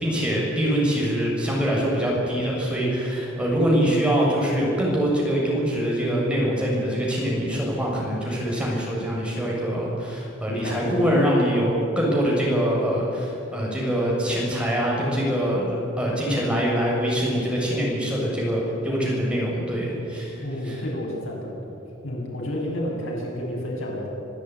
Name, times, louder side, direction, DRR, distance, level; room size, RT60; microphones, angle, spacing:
voice 1, 0.0-20.4 20.7-20.8, equal, 5° right, -4 dB, 7.1 m, -24 dB
voice 2, 10.5-11.2 20.4-21.8 22.0-24.1, equal, 80° left, -2 dB, 7.7 m, -30 dB
27.0 x 15.0 x 9.7 m, 2.9 s
head